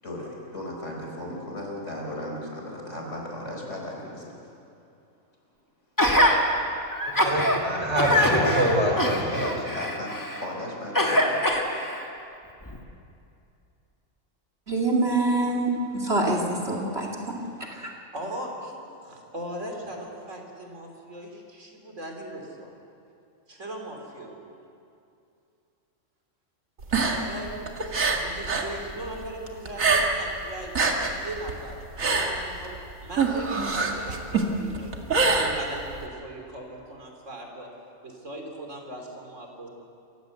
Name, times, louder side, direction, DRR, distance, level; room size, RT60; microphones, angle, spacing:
voice 1, 0.0-4.3 9.3-11.6, left 1 dB, 65° left, 5.1 m, -36 dB
Gasp, 6.0-6.4 6.9-7.6 8.0-10.5 10.9-12.0 12.7-12.8, left 1 dB, 15° left, 2.1 m, -23 dB
voice 2, 7.1-9.5, right 1 dB, 20° right, 4.6 m, -25 dB
voice 3, 14.7-17.4 17.7-17.9, right 2 dB, 50° right, 2.7 m, -25 dB
voice 4, 18.1-22.7 23.5-24.5 26.9-34.9 35.3-37.7 38.0-39.7, right 1 dB, 65° right, 3.7 m, -39 dB
sound 1, 26.8-28.7 29.0-30.3 30.6-36.1, right 4 dB, 85° right, 2.4 m, -25 dB
28.0 x 15.5 x 8.1 m
omnidirectional pair, 1.4 m